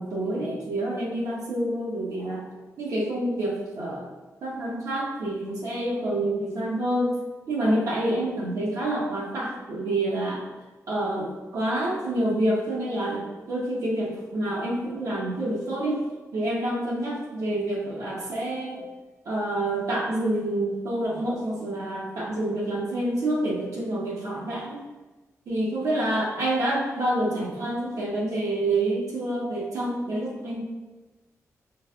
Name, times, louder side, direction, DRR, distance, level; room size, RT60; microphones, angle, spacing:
voice 1, 0.0-2.5 2.8-4.1 4.4-7.1 7.5-10.4 10.9-16.0 16.3-18.9 19.2-24.8 25.5-30.6, right 1 dB, 70° right, -5 dB, 0.9 m, -27 dB
5.1 x 3.4 x 2.3 m, 1.2 s
wide cardioid pair, 175°, 6 cm